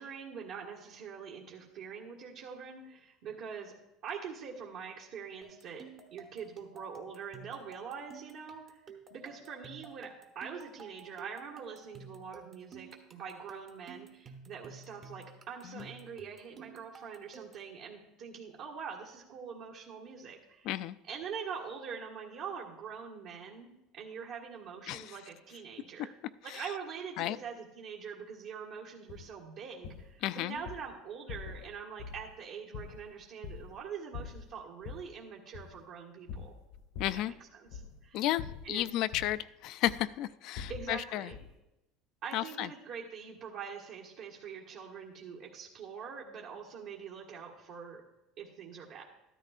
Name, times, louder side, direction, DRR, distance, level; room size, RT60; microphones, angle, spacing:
voice 1, 0.0-3.7 4.0-5.8 6.1-10.1 10.3-20.7 21.1-26.1 26.4-36.6 37.1-38.2 38.6-38.9 40.7-41.4 42.2-48.0 48.4-49.0, right 6 dB, 55° right, -5 dB, 1.5 m, -44 dB
sound 1, 5.4-17.7, right 5 dB, 30° right, 1.0 m, -53 dB
voice 2, 20.6-21.0 24.9-25.2 26.5-26.6 27.2-27.4 30.2-30.5 37.0-37.3 38.1-41.3 42.3-42.7, left 14 dB, 50° left, 15 dB, 0.3 m, -33 dB
sound 2, 29.1-29.3 29.8-30.1 30.6-30.8 31.3-31.7 32.0-32.3 32.7-33.8 34.1-35.1 35.5-35.8 36.3-37.3 37.7-38.1 38.4-39.4 39.9-40.2 40.5-41.0 41.3-41.6, left 6 dB, 80° left, 1.3 m, -45 dB
13.5 x 13.0 x 2.5 m, 0.93 s
cardioid pair, 165°, 0 cm